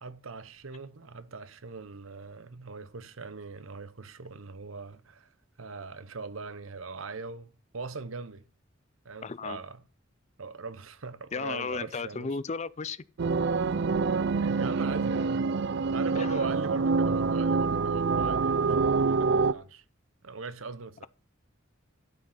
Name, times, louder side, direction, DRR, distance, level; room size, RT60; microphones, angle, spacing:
voice 1, 0.0-8.4 9.0-9.8 10.4-12.4 14.4-15.5 15.9-19.8 20.2-21.1, right 4 dB, 85° right, 0.9 m, -40 dB
voice 2, 9.2-9.6 11.3-13.0 16.1-16.3, left 4 dB, 35° left, 0.5 m, -34 dB
sound 1, 13.2-19.5, right 4 dB, 55° right, 0.4 m, -26 dB
12.0 x 6.2 x 5.6 m
head